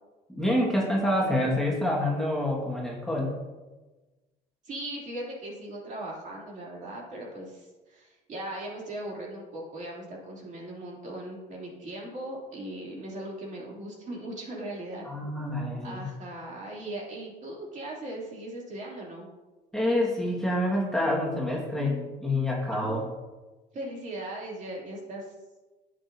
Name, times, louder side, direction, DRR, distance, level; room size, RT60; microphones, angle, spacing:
voice 1, 0.3-3.4 15.1-16.1 19.7-23.0, left 1 dB, 5° left, -4 dB, 1.8 m, -27 dB
voice 2, 4.6-15.1 15.8-19.3 22.7-23.1 23.7-25.3, right 1 dB, 45° right, -3 dB, 3.0 m, -38 dB
11.0 x 8.0 x 2.8 m, 1.2 s
cardioid pair, 110°, 17 cm